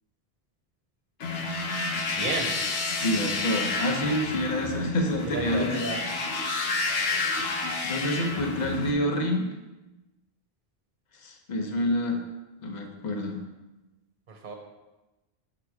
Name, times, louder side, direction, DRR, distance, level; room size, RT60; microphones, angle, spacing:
sound 1, 1.2-8.9, left 3 dB, 75° left, 0.9 m, -30 dB
voice 1, 2.1-2.5 5.2-6.0 14.3-14.5, right 3 dB, 55° right, 1 dB, 0.9 m, -32 dB
voice 2, 3.0-5.8 7.8-9.5 11.2-12.2 12.6-13.4, left 1 dB, 45° left, 2 dB, 0.9 m, -28 dB
7.4 x 3.0 x 4.7 m, 1.1 s
omnidirectional pair, 1.0 m